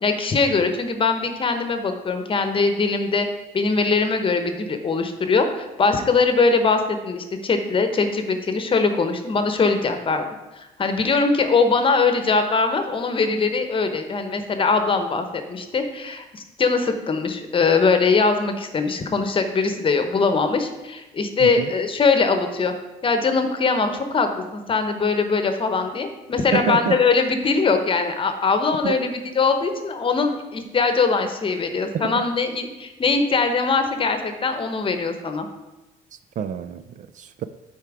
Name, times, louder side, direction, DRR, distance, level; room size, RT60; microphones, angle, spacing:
voice 1, 0.0-3.3 3.5-10.3 10.5-22.7 23.0-35.5, left 4 dB, 30° left, 7 dB, 0.9 m, -21 dB
voice 2, 21.4-21.7 26.5-27.0 28.8-29.0 31.9-32.1 36.4-37.4, right 7 dB, 50° right, 12 dB, 0.4 m, -27 dB
8.5 x 4.6 x 4.7 m, 1.0 s
cardioid pair, 110°, 17 cm